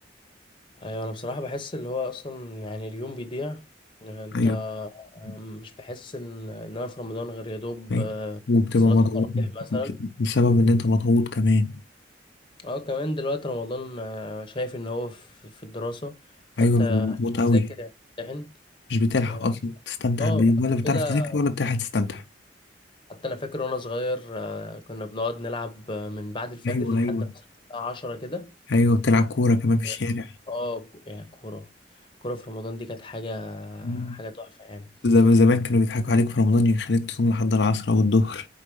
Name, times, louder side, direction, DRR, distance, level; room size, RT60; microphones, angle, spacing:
voice 1, 0.8-3.6 4.0-8.4 8.8-10.0 12.6-16.2 16.6-17.2 17.5-17.9 18.2-18.5 19.3-19.5 20.2-21.4 23.1-27.3 27.7-28.5 29.8-29.9 30.5-31.7 32.2-34.9, left 2 dB, 30° left, 1.0 m, -33 dB
voice 2, 8.5-11.8 16.6-17.7 18.9-22.2 26.6-27.3 28.7-30.3 33.8-34.2 35.0-38.5, left 2 dB, 70° left, 0.6 m, -21 dB
4.7 x 4.1 x 5.3 m
head